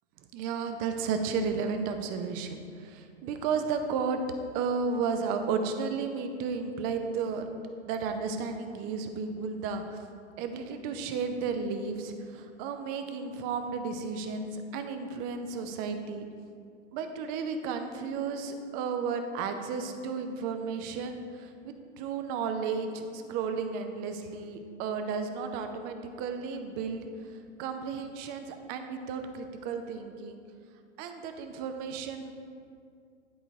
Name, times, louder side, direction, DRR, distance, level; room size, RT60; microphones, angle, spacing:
voice 1, 0.3-4.2 4.5-7.5 7.9-10.0 10.4-16.3 16.9-27.1 27.6-30.4 31.0-32.3, right 5 dB, 25° right, 6 dB, 0.5 m, -33 dB
10.5 x 3.9 x 4.5 m, 2.3 s
hypercardioid pair, 110°, 38 cm